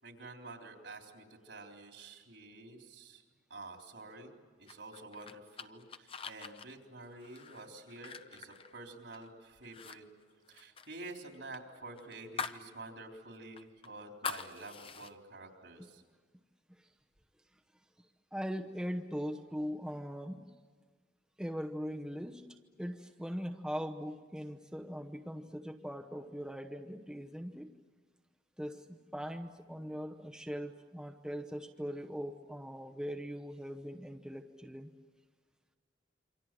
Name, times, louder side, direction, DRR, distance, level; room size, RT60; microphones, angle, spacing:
voice 1, 0.0-3.2 3.5-4.3 4.6-10.1 10.5-16.0, right 2 dB, 70° right, 2 dB, 3.9 m, -49 dB
sound 1, 4.7-9.3 9.6-10.0 10.2-12.7 13.0-13.1 13.6-15.1, left 5 dB, 30° left, 0.8 m, -44 dB
voice 2, 18.0-20.5 21.4-22.5 22.8-27.7 28.6-34.9, equal, 5° right, 2 dB, 0.9 m, -41 dB
28.0 x 25.0 x 7.7 m, 1.4 s
head